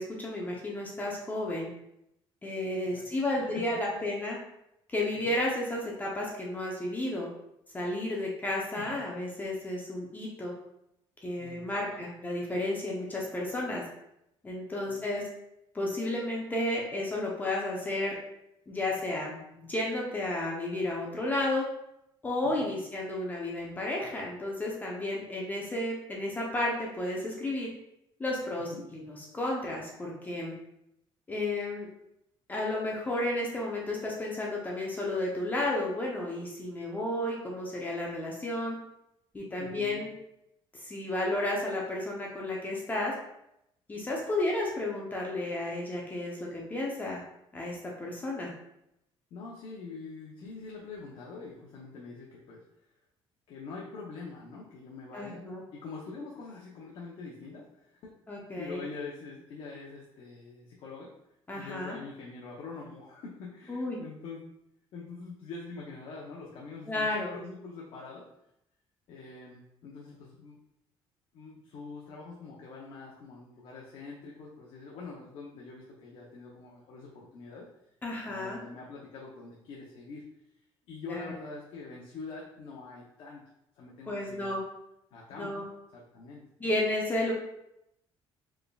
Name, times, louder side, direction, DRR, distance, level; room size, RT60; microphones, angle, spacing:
voice 1, 0.0-1.7 2.4-4.4 4.9-7.3 7.7-10.5 11.2-13.8 14.4-15.2 15.7-18.1 18.7-21.6 22.2-27.7 28.2-29.0 29.3-30.5 31.3-31.9 32.5-38.8 39.3-40.1 40.7-43.1 43.9-47.2 47.5-48.5 55.1-55.6 58.3-58.8 61.5-62.0 63.7-64.0 66.9-67.4 78.0-78.6 81.1-81.3 84.1-84.6 85.3-85.6 86.6-87.3, left 1 dB, 15° left, -2 dB, 0.6 m, -32 dB
voice 2, 2.9-3.7 3.9-4.1 5.1-5.3 8.7-9.0 11.4-12.1 14.9-15.0 22.4-22.7 28.7-28.8 39.6-40.1 49.3-52.6 53.5-58.1 58.6-61.1 61.5-64.4 64.9-68.2 69.1-70.6 71.3-77.7 78.2-80.2 80.9-83.4 83.8-84.6 85.1-86.8, left 4 dB, 60° left, -3 dB, 0.7 m, -44 dB
4.6 x 3.3 x 2.3 m, 0.81 s
cardioid pair, 150°, 10 cm